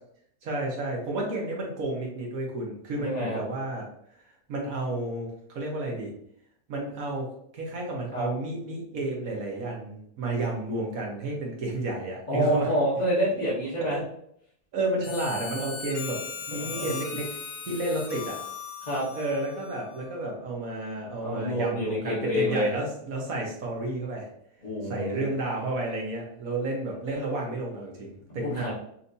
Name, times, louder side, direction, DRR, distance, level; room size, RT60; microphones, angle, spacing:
voice 1, 0.4-3.9 4.5-6.1 6.7-7.3 7.5-12.7 13.9-14.0 14.7-16.2 16.5-17.3 17.6-18.4 19.1-24.3 24.8-28.7, right 2 dB, 75° right, -1 dB, 1.6 m, -31 dB
voice 2, 3.0-3.4 8.1-8.3 12.3-14.0 16.5-16.9 18.8-19.0 21.2-22.7 24.6-25.3 28.4-28.7, equal, 30° left, -7 dB, 1.2 m, -27 dB
Harmonica, 15.0-20.2, left 6 dB, 75° left, 1.2 m, -38 dB
5.8 x 2.8 x 2.7 m, 0.70 s
omnidirectional pair, 1.5 m